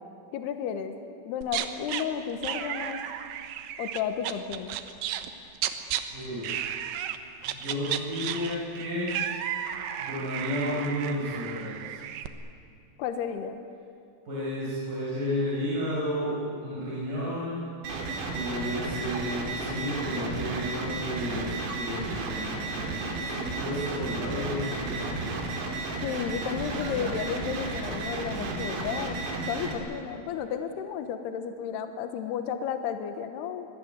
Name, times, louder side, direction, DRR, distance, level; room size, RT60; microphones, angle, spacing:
voice 1, 0.3-0.9 1.3-3.1 3.8-4.8 13.0-13.6 26.0-29.2 29.5-33.7, left 8 dB, 70° left, 7 dB, 2.8 m, -33 dB
sound 1, 1.4-2.0 2.4-5.3 5.6-6.0 6.4-7.2 7.4-12.3, right 11 dB, 70° right, 2.8 m, -33 dB
voice 2, 6.1-6.5 7.5-9.1 10.0-12.0 14.3-17.6 18.3-25.4, equal, 40° right, -8 dB, 7.9 m, -32 dB
sound 2, 17.8-29.7, right 3 dB, 90° right, 5.6 m, -33 dB
26.5 x 20.0 x 9.6 m, 2.4 s
omnidirectional pair, 5.7 m